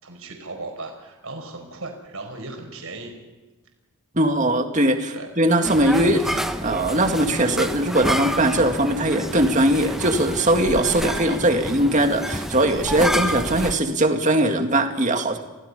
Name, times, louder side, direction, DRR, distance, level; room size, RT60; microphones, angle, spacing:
voice 1, 0.0-3.1 5.1-5.3, right 2 dB, 70° right, 3 dB, 4.8 m, -36 dB
voice 2, 4.1-15.4, right 1 dB, 35° right, 5 dB, 2.1 m, -20 dB
sound 1, 5.6-13.8, equal, ahead, 0.9 m, -28 dB
27.5 x 17.0 x 5.6 m, 1.2 s
head